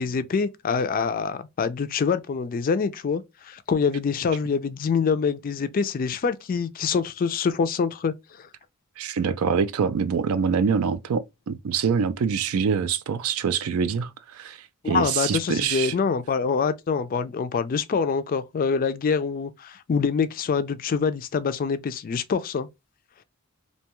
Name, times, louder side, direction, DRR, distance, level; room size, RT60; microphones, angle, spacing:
voice 1, 0.0-8.5 14.8-22.7, left 5 dB, 40° left, 0.3 m, -25 dB
voice 2, 9.0-15.9, right 6 dB, 70° right, 0.4 m, -25 dB
2.7 x 2.2 x 2.9 m
head